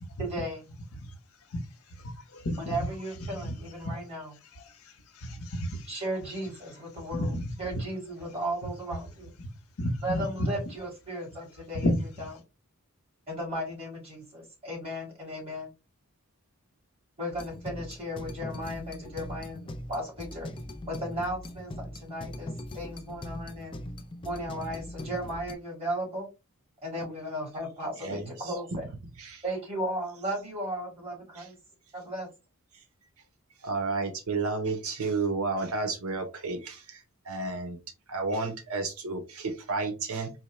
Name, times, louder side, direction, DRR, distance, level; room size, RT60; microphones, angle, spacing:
voice 1, 0.2-0.6 2.6-4.4 5.9-9.3 10.0-11.9 13.3-15.7 17.2-20.5 20.9-23.8 24.2-26.3 26.8-28.8 29.4-31.6 31.9-32.3, right 1 dB, 25° right, -3 dB, 2.1 m, -35 dB
voice 2, 1.9-2.9 3.3-3.9 4.5-5.9 7.1-7.8 9.4-9.5 9.8-10.5 11.7-12.3, left 1 dB, 70° left, 6 dB, 0.9 m, -32 dB
sound 1, 17.3-25.5, left 1 dB, 20° left, 0.4 m, -40 dB
voice 3, 28.0-28.5 29.2-29.4 31.3-31.5 33.6-37.8 38.1-40.3, right 3 dB, 70° right, 6 dB, 0.8 m, -32 dB
4.3 x 2.1 x 3.1 m, 0.27 s
head